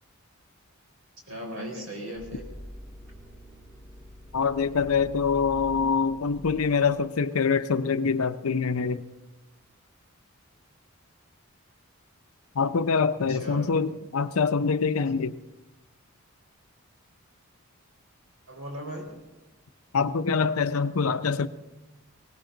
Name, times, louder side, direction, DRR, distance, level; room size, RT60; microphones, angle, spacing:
voice 1, 1.3-2.4 13.3-13.7 18.5-19.2, equal, 70° right, 4.4 m, -37 dB
sound 1, 2.1-7.0, equal, 10° right, 5.2 m, -45 dB
voice 2, 4.3-9.0 12.5-15.4 19.9-21.5, left 5 dB, 80° left, 0.6 m, -25 dB
20.0 x 18.5 x 3.9 m
head